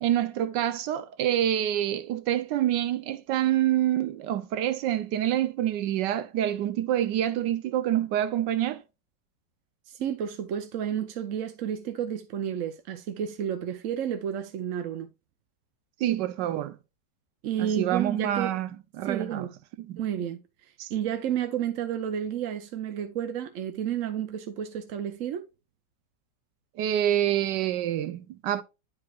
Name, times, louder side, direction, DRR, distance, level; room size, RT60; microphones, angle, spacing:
voice 1, 0.0-8.8 16.0-16.8 17.6-18.7 19.0-19.5 19.8-20.0 20.8-20.9 26.8-28.6, right 12 dB, 80° right, 1.2 m, -27 dB
voice 2, 9.9-15.1 17.4-18.6 19.1-19.5 20.0-20.4 20.9-25.4, right 9 dB, 60° right, 0.9 m, -31 dB
10.5 x 4.7 x 2.3 m
omnidirectional pair, 1.9 m